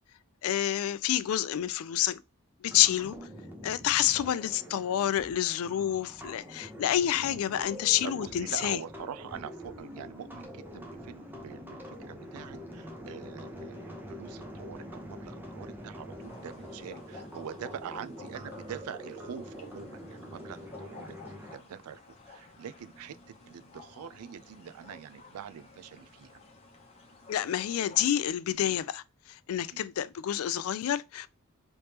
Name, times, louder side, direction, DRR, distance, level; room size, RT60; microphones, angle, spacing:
voice 1, 0.4-2.2 2.6-3.2 3.6-8.8 27.3-31.3, left 11 dB, 70° left, 0.3 m, -28 dB
sound 1, 2.7-21.5, equal, 10° right, 0.6 m, -45 dB
voice 2, 8.0-21.2 21.5-26.4 29.7-29.9, right 8 dB, 85° right, 0.3 m, -44 dB
sound 2, 16.2-28.1, left 3 dB, 30° left, 0.8 m, -53 dB
3.3 x 3.1 x 2.9 m
head